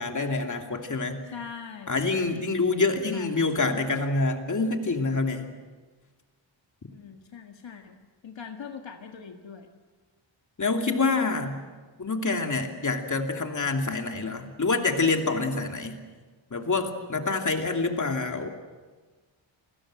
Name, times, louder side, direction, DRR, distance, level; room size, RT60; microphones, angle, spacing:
voice 1, 0.0-1.2 1.9-5.5 10.6-11.6 12.0-16.0 16.5-18.5, left 3 dB, 40° left, 4 dB, 2.8 m, -26 dB
voice 2, 1.3-2.0 3.1-3.3 3.6-3.7 6.9-8.0 8.2-9.7, left 6 dB, 70° left, 3 dB, 1.9 m, -41 dB
29.5 x 20.5 x 7.7 m, 1.3 s
wide cardioid pair, 110°, 47 cm